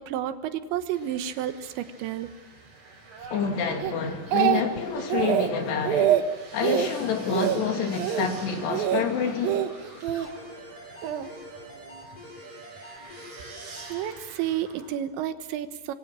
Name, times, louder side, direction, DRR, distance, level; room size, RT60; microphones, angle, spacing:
voice 1, 0.0-2.3 13.9-15.9, right 11 dB, 85° right, 3.5 m, -31 dB
sound 1, 0.9-15.0, right 3 dB, 40° right, 5.7 m, -47 dB
voice 2, 3.3-6.2 6.5-9.7, left 6 dB, 70° left, 4.6 m, -28 dB
Speech, 3.8-4.8 5.1-5.5 5.8-6.2 6.6-6.9 7.3-7.6 8.0-8.3 8.7-9.0 9.4-10.3 11.0-11.3, right 11 dB, 65° right, 2.7 m, -24 dB
sound 2, 6.5-14.2, equal, 20° left, 6.1 m, -47 dB
26.0 x 23.0 x 7.6 m
omnidirectional pair, 5.1 m